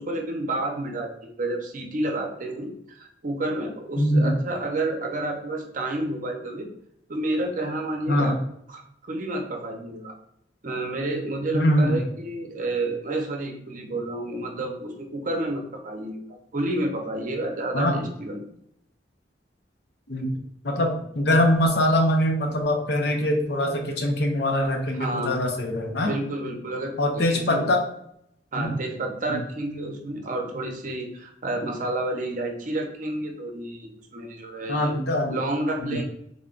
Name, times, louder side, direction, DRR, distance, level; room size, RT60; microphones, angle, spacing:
voice 1, 0.0-6.7 7.1-8.4 8.7-10.1 10.6-18.5 24.9-25.4 26.0-27.7 28.5-35.0 35.3-36.0, right 2 dB, 50° right, 3 dB, 0.6 m, -30 dB
voice 2, 4.0-4.3 8.1-8.3 11.5-12.0 17.7-18.0 20.1-20.3 20.6-26.1 27.0-27.8 28.6-28.7 29.3-29.4 34.7-35.4 35.8-36.0, left 1 dB, 65° left, 2 dB, 0.7 m, -23 dB
3.6 x 2.2 x 3.8 m, 0.73 s
head